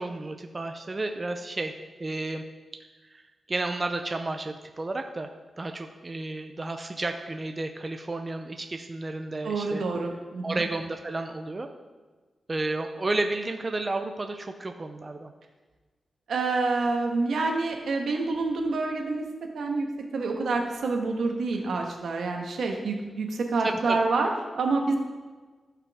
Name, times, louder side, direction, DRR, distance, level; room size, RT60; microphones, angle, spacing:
voice 1, 0.0-1.7 2.0-2.4 3.1-3.2 3.5-5.3 5.6-9.8 10.4-11.7 12.5-15.3 23.6-24.0, right 2 dB, 30° right, 5 dB, 0.6 m, -32 dB
voice 2, 9.4-10.6 16.3-19.2 19.5-19.9 20.1-25.0, right 3 dB, 85° right, 2 dB, 1.4 m, -27 dB
15.0 x 5.8 x 3.6 m, 1.3 s
wide cardioid pair, 120°, 0 cm